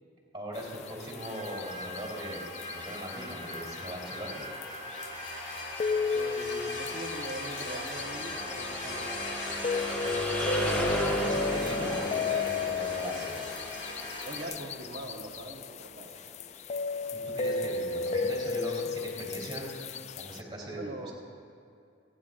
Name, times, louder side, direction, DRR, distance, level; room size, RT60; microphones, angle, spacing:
voice 1, 0.3-4.5 11.1-13.5 17.1-19.7 20.2-21.1, equal, 25° right, -4 dB, 3.5 m, -39 dB
sound 1, 0.5-16.4, equal, 5° left, 1.3 m, -38 dB
sound 2, 0.6-20.4, left 4 dB, 40° left, 0.3 m, -35 dB
sound 3, 1.2-14.5, left 2 dB, 70° left, 2.1 m, -39 dB
voice 2, 6.1-9.4 14.2-16.1 20.7-21.1, right 1 dB, 50° right, -5 dB, 1.2 m, -42 dB
30.0 x 10.5 x 2.5 m, 2.5 s
head